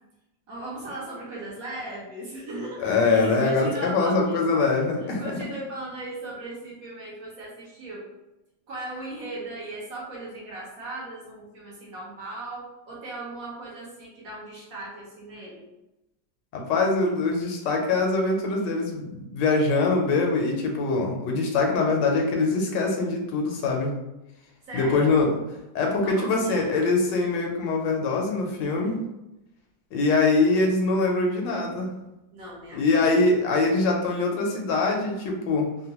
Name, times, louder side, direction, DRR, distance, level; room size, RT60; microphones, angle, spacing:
voice 1, 0.5-4.4 5.0-8.1 8.7-15.6 24.7-25.2 26.0-26.7 32.3-33.1, right 2 dB, 55° right, -5 dB, 1.2 m, -37 dB
voice 2, 2.8-5.2 16.5-23.9 24.7-25.3 25.7-28.9 29.9-31.9 32.7-35.7, left 3 dB, 80° left, 1 dB, 1.2 m, -23 dB
3.6 x 2.1 x 2.8 m, 0.94 s
omnidirectional pair, 2.0 m